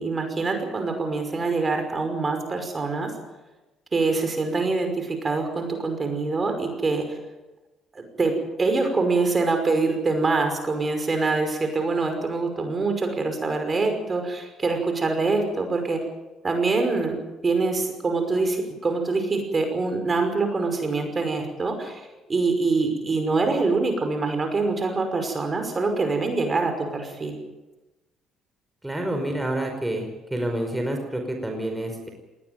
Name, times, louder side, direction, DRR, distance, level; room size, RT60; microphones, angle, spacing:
voice 1, 0.0-3.1 3.9-7.1 7.9-16.0 16.4-17.2 17.4-22.0 22.3-27.4, right 3 dB, 30° right, 6 dB, 5.5 m, -25 dB
voice 2, 28.8-30.1 30.3-32.1, right 1 dB, 10° right, 3 dB, 5.1 m, -28 dB
20.0 x 18.0 x 9.2 m, 1.1 s
cardioid pair, 90°, 0 cm